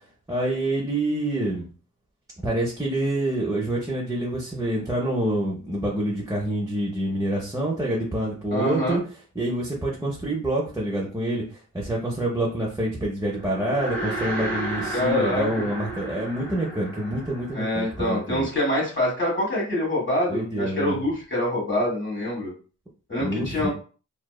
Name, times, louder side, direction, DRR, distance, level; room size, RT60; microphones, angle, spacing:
voice 1, 0.3-1.7 2.4-9.0 9.4-11.4 11.7-18.5 20.3-21.0 23.2-23.7, right 1 dB, 10° right, -4 dB, 0.5 m, -27 dB
voice 2, 8.5-9.0 14.9-15.7 17.5-22.5 23.1-23.7, left 1 dB, 40° left, -3 dB, 1.5 m, -25 dB
sound 1, 13.3-18.8, right 1 dB, 15° left, 1.3 m, -33 dB
2.7 x 2.1 x 2.2 m, 0.38 s
wide cardioid pair, 90°, 30 cm